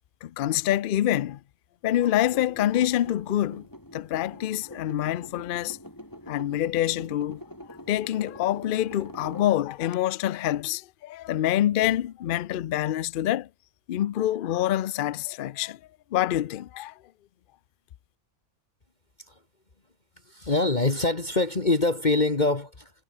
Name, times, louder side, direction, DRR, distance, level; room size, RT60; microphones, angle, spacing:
voice 1, 0.2-1.4 1.8-3.7 3.9-5.8 6.3-7.4 7.9-13.5 13.9-15.8 16.1-16.9, left 12 dB, 90° left, 0.4 m, -26 dB
sound 1, 2.2-9.9, equal, 15° left, 7.3 m, -45 dB
voice 2, 20.3-22.9, left 2 dB, 30° left, 1.9 m, -24 dB
omnidirectional pair, 1.5 m